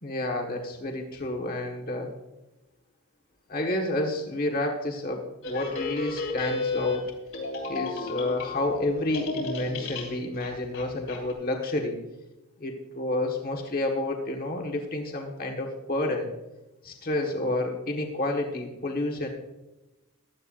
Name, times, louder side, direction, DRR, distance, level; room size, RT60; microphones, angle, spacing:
voice 1, 0.0-2.1 3.5-7.0 7.7-12.0 12.6-16.3 16.8-19.3, left 1 dB, 40° left, 2 dB, 1.5 m, -30 dB
sound 1, 5.4-8.9 9.1-11.3, left 3 dB, 70° left, 3.4 m, -32 dB
15.5 x 12.5 x 2.5 m, 1.0 s
head